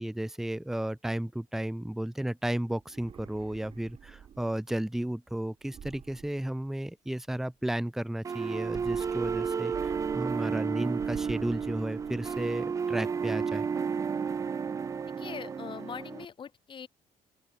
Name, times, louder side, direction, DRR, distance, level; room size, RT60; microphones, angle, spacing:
voice 1, 0.0-13.7, right 1 dB, 5° right, 1.1 m, -33 dB
sound 1, 2.8-4.7 5.6-7.1 8.5-10.6 10.9-12.6, right 8 dB, 40° right, 3.5 m, -49 dB
sound 2, 8.2-16.2, right 6 dB, 20° right, 0.4 m, -32 dB
voice 2, 15.2-16.9, left 7 dB, 35° left, 3.7 m, -42 dB
open air
cardioid pair, 165°, 15 cm